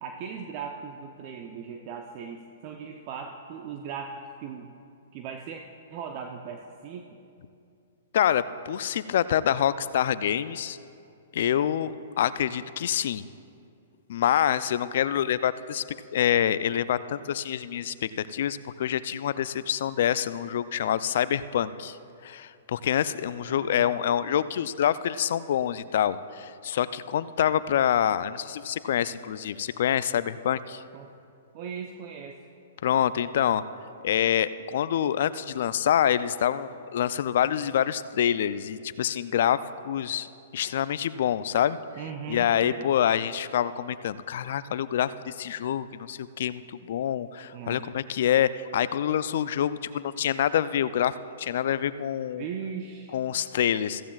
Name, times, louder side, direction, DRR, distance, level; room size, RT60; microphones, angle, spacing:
voice 1, 0.0-4.7 5.1-5.6 5.9-7.1 23.5-23.9 30.9-31.1 31.5-32.4 42.0-42.9 47.5-47.9 52.3-53.2, right 6 dB, 45° right, 3 dB, 0.7 m, -38 dB
voice 2, 8.1-10.8 11.3-13.2 14.1-15.8 16.1-22.0 22.2-30.8 32.8-33.6 34.0-39.6 39.8-40.3 40.5-41.8 42.3-52.4 53.1-54.0, left 10 dB, 65° left, 15 dB, 0.4 m, -26 dB
15.0 x 15.0 x 2.4 m, 2.5 s
hypercardioid pair, 125°, 0 cm